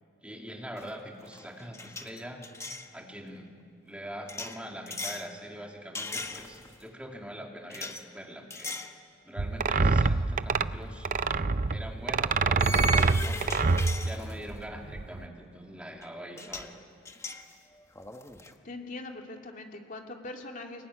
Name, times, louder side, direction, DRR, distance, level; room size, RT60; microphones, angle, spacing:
voice 1, 0.2-2.4 2.9-3.5 3.8-8.8 9.2-11.1 11.7-13.6 14.0-16.7, equal, 5° right, 1 dB, 2.6 m, -43 dB
sound 1, 0.8-2.9 4.3-5.3 6.0-6.8 7.7-8.0 8.5-9.0 9.4-9.6 11.1-11.2 12.6-14.7 16.0-16.1 16.4-16.7 17.1-18.5, left 2 dB, 15° left, 1.2 m, -38 dB
sound 2, 9.4-15.2, right 4 dB, 45° right, 0.6 m, -26 dB
voice 2, 18.6-20.9, left 2 dB, 45° left, 2 dB, 2.7 m, -41 dB
25.0 x 21.5 x 9.9 m, 2.3 s
head